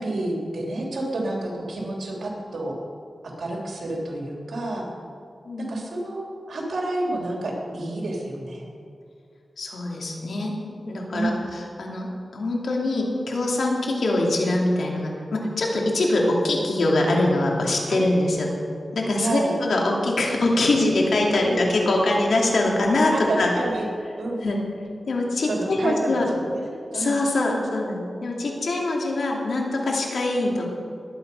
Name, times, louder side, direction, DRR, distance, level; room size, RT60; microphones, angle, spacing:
voice 1, 0.0-2.7 3.2-4.9 5.6-8.6 11.1-11.4 17.9-18.0 19.2-19.6 21.5-21.6 23.1-23.9 24.2-24.4 25.5-27.2, right 2 dB, 90° right, -1 dB, 3.2 m, -29 dB
voice 2, 9.6-10.5 10.8-12.1 12.3-18.5 18.9-23.5 24.4-24.6 25.1-26.3 26.9-30.7, left 2 dB, 85° left, -1 dB, 2.6 m, -23 dB
20.5 x 9.0 x 5.5 m, 2.4 s
wide cardioid pair, 75°, 0 cm